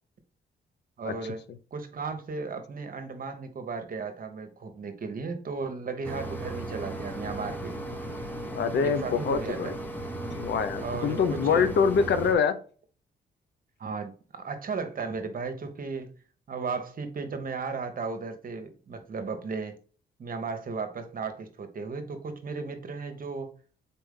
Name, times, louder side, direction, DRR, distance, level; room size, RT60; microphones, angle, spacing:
voice 1, 1.0-1.4 1.7-7.8 8.8-9.8 10.8-11.7 13.8-16.1 16.5-19.7 20.2-23.5, right 4 dB, 50° right, 1.0 m, -35 dB
Mechanisms, 6.0-12.3, right 1 dB, 10° left, 0.9 m, -36 dB
voice 2, 8.5-9.8 10.3-12.6, left 6 dB, 65° left, 0.6 m, -25 dB
4.1 x 3.5 x 3.6 m
supercardioid pair, 60°, 19 cm